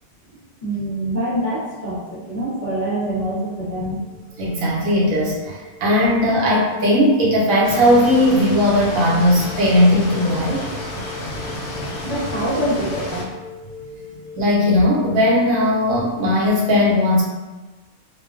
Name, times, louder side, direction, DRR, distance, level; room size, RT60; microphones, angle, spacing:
voice 1, 0.6-4.0 11.2-13.2 14.1-14.2, right 1 dB, 40° left, -10 dB, 0.8 m, -25 dB
sound 1, 4.0-14.6, left 3 dB, 45° right, 0.8 m, -40 dB
voice 2, 4.4-10.6 14.4-17.2, left 1 dB, 75° right, -5 dB, 1.1 m, -17 dB
sound 2, 7.6-13.2, left 1 dB, 90° left, 1.0 m, -31 dB
2.4 x 2.1 x 2.4 m, 1.2 s
omnidirectional pair, 1.4 m